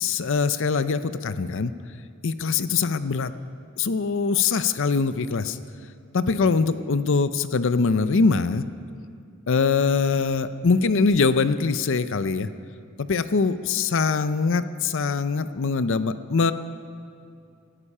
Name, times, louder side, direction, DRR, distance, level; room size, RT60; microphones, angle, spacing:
voice 1, 0.0-1.7 2.2-3.3 3.8-5.6 6.1-8.6 9.5-12.5 13.0-16.5, left 4 dB, 60° left, 13 dB, 0.6 m, -23 dB
18.5 x 13.0 x 5.5 m, 2.4 s
head